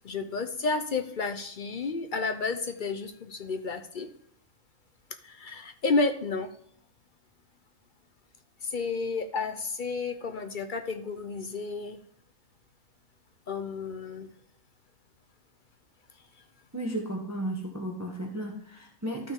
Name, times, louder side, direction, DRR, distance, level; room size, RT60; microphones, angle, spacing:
voice 1, 0.0-4.1 5.2-6.5 8.6-12.0 13.5-14.3, left 4 dB, 50° left, 8 dB, 0.7 m, -31 dB
voice 2, 16.7-19.3, right 1 dB, 15° right, 1 dB, 1.2 m, -34 dB
12.5 x 6.1 x 3.7 m, 0.64 s
omnidirectional pair, 1.3 m